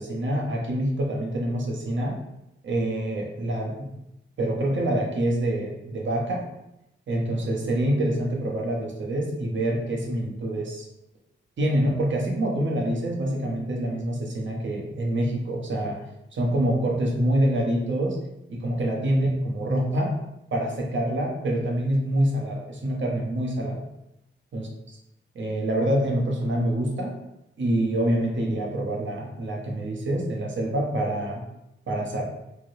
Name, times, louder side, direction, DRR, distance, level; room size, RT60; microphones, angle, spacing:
voice 1, 0.0-2.2 2.6-3.9 4.4-6.4 7.1-10.9 11.6-16.0 16.3-18.2 18.5-20.1 20.5-23.9 24.5-24.7 25.3-27.1 27.6-31.4 31.9-32.2, right 1 dB, 70° right, -2 dB, 0.8 m, -26 dB
3.3 x 2.7 x 2.7 m, 0.88 s
wide cardioid pair, 85°, 20 cm